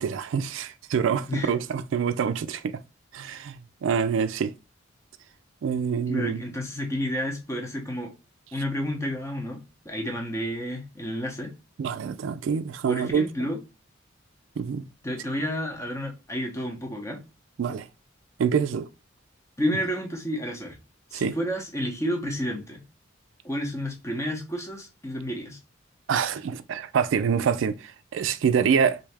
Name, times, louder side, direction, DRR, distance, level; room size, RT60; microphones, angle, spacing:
voice 1, 0.0-2.8 3.1-4.5 5.6-6.4 11.8-13.3 14.6-14.9 17.6-17.9 18.4-18.9 21.1-21.3 26.1-29.0, right 6 dB, 75° right, 0.3 m, -26 dB
voice 2, 6.1-8.1 8.5-11.5 12.9-13.6 15.0-17.2 19.6-20.8 21.1-22.8 23.4-25.6, equal, 15° left, 0.8 m, -30 dB
3.3 x 2.7 x 3.3 m
head